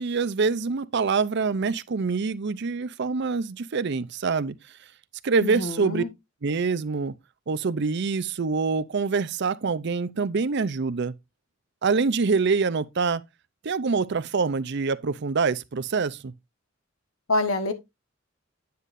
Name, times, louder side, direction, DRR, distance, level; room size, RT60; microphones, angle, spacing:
voice 1, 0.0-4.6 5.2-6.0 6.4-7.1 7.5-11.1 11.8-13.2 13.6-16.3, right 4 dB, 60° right, 0.6 m, -25 dB
voice 2, 5.4-6.1 17.3-17.7, left 2 dB, 90° left, 1.4 m, -26 dB
9.4 x 8.2 x 2.6 m
head